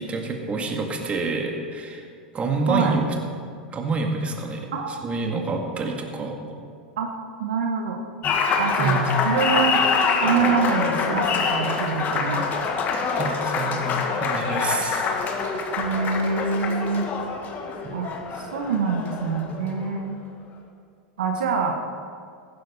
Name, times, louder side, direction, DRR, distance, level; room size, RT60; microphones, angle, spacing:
voice 1, 0.0-2.0 2.3-3.1 3.7-6.5 8.8-9.3 13.2-15.1, right 3 dB, 25° right, 2 dB, 2.0 m, -27 dB
voice 2, 4.7-5.0 7.0-7.1 7.4-8.0 8.6-9.0 9.2-9.8 10.2-12.5 15.8-17.1 17.9-20.2 21.2-21.8, right 5 dB, 75° right, 3 dB, 1.3 m, -25 dB
Applause, 8.2-20.0, left 5 dB, 35° left, 1.8 m, -25 dB
15.0 x 12.5 x 4.3 m, 2.2 s
hypercardioid pair, 100°, 5 cm